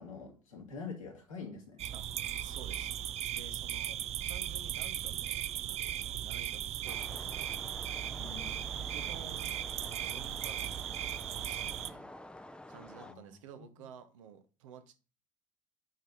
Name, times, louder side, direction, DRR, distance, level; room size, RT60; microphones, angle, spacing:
voice 1, 0.0-1.8 8.2-8.7 13.0-13.7, left 5 dB, 75° left, 2.2 m, -46 dB
sound 1, 1.8-11.9, right 11 dB, 40° right, 0.5 m, -37 dB
voice 2, 2.4-2.9 3.3-7.6 8.8-9.5 9.9-12.1 12.7-14.9, right 7 dB, 70° right, 0.9 m, -52 dB
sound 2, 6.8-13.1, left 1 dB, 5° left, 0.7 m, -49 dB
9.1 x 3.5 x 4.1 m
figure-of-eight pair, 55°, 17 cm